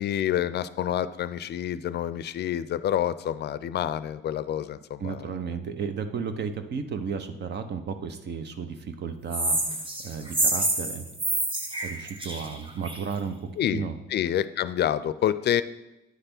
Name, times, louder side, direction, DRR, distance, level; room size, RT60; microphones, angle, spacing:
voice 1, 0.0-5.3 13.6-13.8 14.1-15.6, left 10 dB, 55° left, 15 dB, 0.4 m, -28 dB
voice 2, 5.0-9.6 10.0-11.1 11.8-13.9, right 6 dB, 60° right, 8 dB, 0.8 m, -33 dB
sound 1, 9.3-13.1, right 1 dB, 25° right, 1.1 m, -28 dB
9.4 x 3.3 x 6.0 m, 1.0 s
cardioid pair, 90°, 20 cm